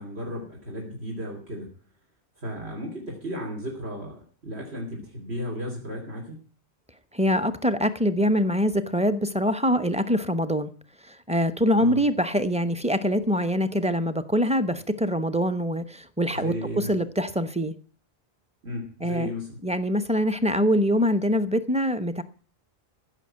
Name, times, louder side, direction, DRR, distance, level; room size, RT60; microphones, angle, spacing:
voice 1, 0.0-1.7 2.4-6.4 11.8-12.0 16.3-16.9 18.6-19.5, equal, 75° right, 3.3 m, -34 dB
voice 2, 7.1-10.7 11.1-17.7 19.0-19.3 19.6-22.2, equal, 5° right, 0.8 m, -24 dB
15.5 x 6.4 x 8.8 m
omnidirectional pair, 1.1 m